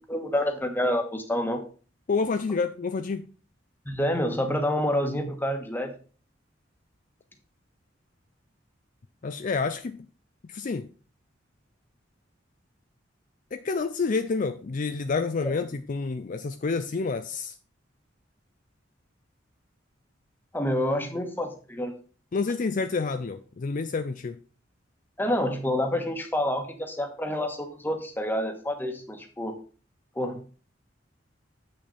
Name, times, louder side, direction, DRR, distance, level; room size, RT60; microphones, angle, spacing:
voice 1, 0.0-1.6 3.8-5.9 15.4-15.5 20.5-22.0 25.2-29.5 30.1-30.4, left 1 dB, 10° left, 4 dB, 1.3 m, -28 dB
voice 2, 2.1-3.3 9.2-10.0 10.4-10.9 13.5-17.5 22.3-24.4, left 4 dB, 45° left, 9 dB, 0.4 m, -28 dB
8.0 x 6.3 x 4.1 m, 0.38 s
head